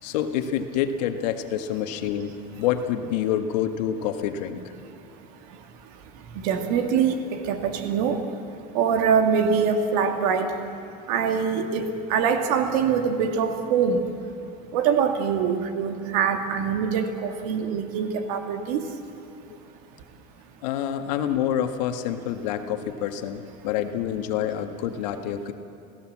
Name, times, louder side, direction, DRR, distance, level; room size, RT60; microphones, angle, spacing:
voice 1, 0.0-4.6 20.6-25.5, left 9 dB, 85° left, 7 dB, 1.8 m, -27 dB
voice 2, 4.9-10.8 11.1-14.2 14.7-19.0, right 6 dB, 65° right, 6 dB, 2.3 m, -24 dB
29.5 x 16.5 x 7.5 m, 2.8 s
cardioid pair, 180°, 21 cm